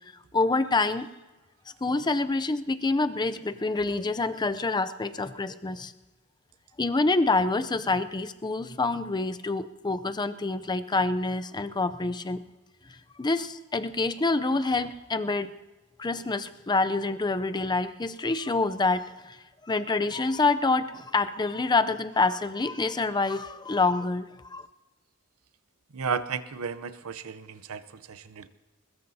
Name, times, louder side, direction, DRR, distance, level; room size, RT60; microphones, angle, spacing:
voice 1, 0.3-1.1 1.8-5.9 6.8-12.4 13.2-15.5 16.0-19.4 19.6-24.7, left 3 dB, 20° left, 11 dB, 0.5 m, -27 dB
voice 2, 25.9-28.5, right 5 dB, 70° right, 14 dB, 0.7 m, -34 dB
21.0 x 21.0 x 2.8 m, 1.2 s
head